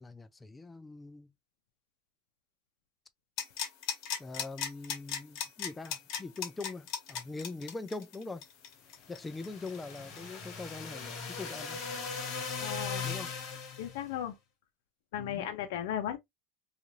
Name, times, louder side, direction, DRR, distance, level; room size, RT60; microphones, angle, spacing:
voice 1, 0.0-1.3 4.2-8.4 9.1-11.8 13.0-13.3 15.2-15.5, left 3 dB, 10° left, 0.3 m, -42 dB
sound 1, 3.4-10.9 11.2-11.3, left 8 dB, 55° left, 0.9 m, -37 dB
sound 2, 9.1-14.0, left 5 dB, 40° left, 1.1 m, -39 dB
voice 2, 12.6-13.1 13.8-14.4 15.1-16.2, left 10 dB, 80° left, 0.5 m, -36 dB
2.6 x 2.4 x 3.0 m
supercardioid pair, 155°, 0 cm